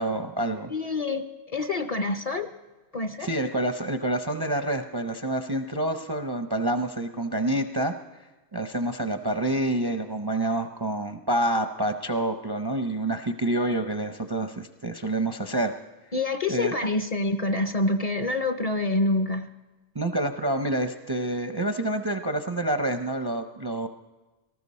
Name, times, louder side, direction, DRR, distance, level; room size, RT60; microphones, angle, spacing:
voice 1, 0.0-0.7 3.2-15.7 16.5-16.8 19.9-23.9, right 1 dB, 30° right, 8 dB, 0.4 m, -28 dB
voice 2, 0.7-2.5 2.9-3.3 16.1-19.5, left 2 dB, 40° left, 8 dB, 0.6 m, -27 dB
18.5 x 14.0 x 4.2 m, 1.2 s
omnidirectional pair, 1.2 m